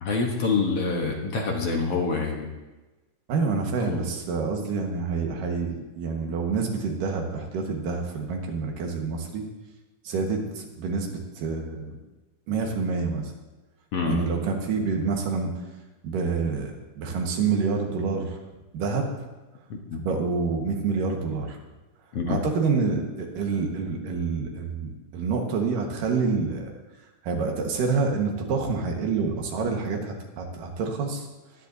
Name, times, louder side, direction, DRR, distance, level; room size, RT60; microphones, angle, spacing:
voice 1, 0.0-2.5 3.8-4.1 13.9-14.2 19.7-20.0 22.1-22.4, left 4 dB, 60° left, 1 dB, 1.9 m, -26 dB
voice 2, 3.3-9.4 10.0-12.0 12.5-13.3 14.1-15.5 16.0-18.4 18.7-19.3 20.0-21.6 22.3-26.7 27.2-31.3, right 4 dB, 85° right, 2 dB, 3.1 m, -27 dB
19.5 x 10.5 x 2.7 m, 1.1 s
omnidirectional pair, 3.7 m